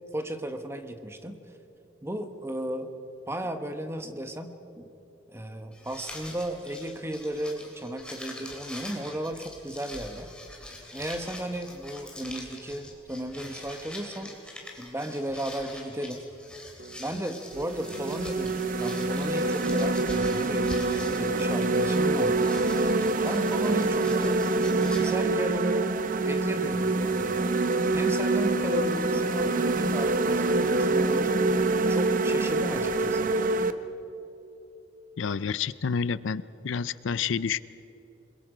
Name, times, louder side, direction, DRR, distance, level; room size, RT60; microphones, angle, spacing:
voice 1, 0.1-1.4 2.0-2.9 3.3-4.9 5.3-10.3 10.9-14.3 14.8-16.2 17.0-22.5 23.2-24.5 25.0-25.8 26.1-27.4 27.9-33.3, right 1 dB, 15° right, 7 dB, 1.2 m, -35 dB
sound 1, 5.7-25.1, left 1 dB, 5° left, 2.9 m, -44 dB
sound 2, 16.8-17.0 17.5-33.7, right 2 dB, 45° right, 0.8 m, -25 dB
voice 2, 35.2-37.6, left 6 dB, 80° left, 17 dB, 0.5 m, -29 dB
27.0 x 22.0 x 5.1 m, 3.0 s
head